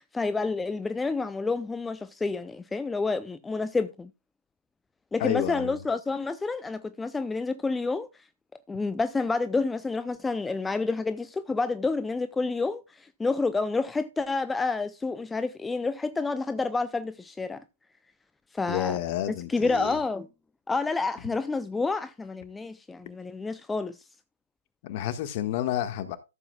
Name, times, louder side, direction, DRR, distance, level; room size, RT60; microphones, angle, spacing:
voice 1, 0.0-4.1 5.1-8.1 8.7-17.6 18.5-19.0 19.5-20.3 20.7-24.0, left 3 dB, 10° left, 0.5 m, -29 dB
voice 2, 5.2-5.8 18.7-20.0 24.8-26.2, left 11 dB, 45° left, 1.6 m, -30 dB
14.5 x 7.7 x 2.3 m
hypercardioid pair, 125°, 0 cm